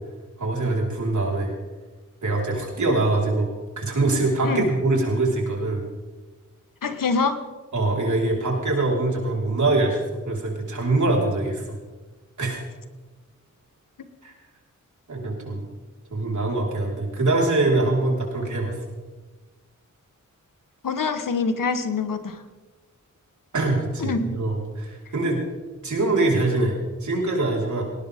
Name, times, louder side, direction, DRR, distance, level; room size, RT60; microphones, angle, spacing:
voice 1, 0.4-1.5 2.2-3.5 3.8-5.8 7.7-11.7 12.4-12.6 14.2-14.3 15.1-15.7 16.1-18.8 23.5-25.4 25.8-27.8, right 2 dB, 65° right, -2 dB, 4.8 m, -23 dB
voice 2, 6.8-7.4 20.8-22.4 24.0-24.4, left 4 dB, 80° left, 9 dB, 1.5 m, -25 dB
19.0 x 18.5 x 3.7 m, 1.2 s
wide cardioid pair, 110°, 32 cm